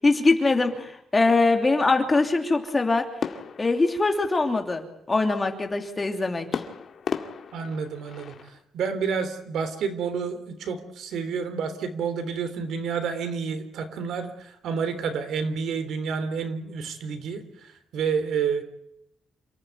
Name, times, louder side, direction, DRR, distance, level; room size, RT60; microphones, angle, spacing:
voice 1, 0.0-3.1 3.6-6.6, left 3 dB, 20° left, 4 dB, 2.9 m, -22 dB
sound 1, 3.2-4.8 6.5-8.6, left 6 dB, 50° left, 2.2 m, -35 dB
voice 2, 7.5-18.6, right 6 dB, 85° right, 9 dB, 3.5 m, -29 dB
28.5 x 15.5 x 9.5 m, 0.78 s
wide cardioid pair, 155°, 0 cm